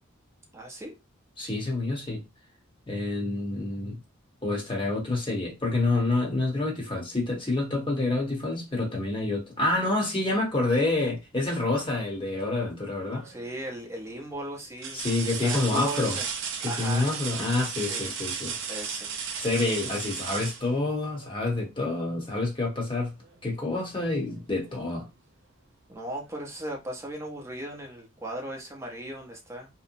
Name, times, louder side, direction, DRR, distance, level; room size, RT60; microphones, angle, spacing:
voice 1, 0.5-0.9 13.2-15.0 15.3-16.3 16.6-17.1 17.8-18.1 18.7-19.1 25.9-29.7, right 1 dB, 15° right, 0.7 m, -37 dB
voice 2, 1.4-2.2 2.9-4.0 4.4-13.3 14.9-16.2 16.6-18.6 19.4-23.1 23.4-25.1, left 2 dB, 25° left, 1.0 m, -28 dB
sound 1, 13.0-13.5 14.1-14.2 14.8-21.5 23.2-23.4 23.8-24.9 26.2-26.3, right 6 dB, 60° right, 0.5 m, -35 dB
2.8 x 2.1 x 2.6 m
head